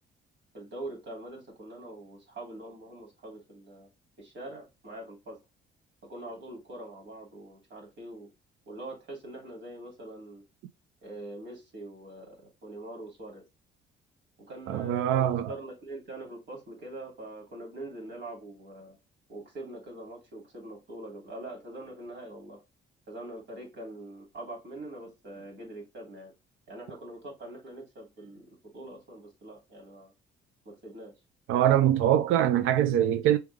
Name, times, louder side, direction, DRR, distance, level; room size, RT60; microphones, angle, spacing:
voice 1, 0.5-3.9 4.2-5.4 6.0-8.3 8.7-10.4 11.0-13.4 14.5-19.0 19.3-22.6 23.1-26.3 26.7-30.1 30.6-31.1, right 1 dB, 65° right, 3.0 m, -43 dB
voice 2, 14.7-15.5 31.5-33.4, right 11 dB, 85° right, 0.4 m, -23 dB
4.3 x 3.4 x 3.4 m
cardioid pair, 90°, 20 cm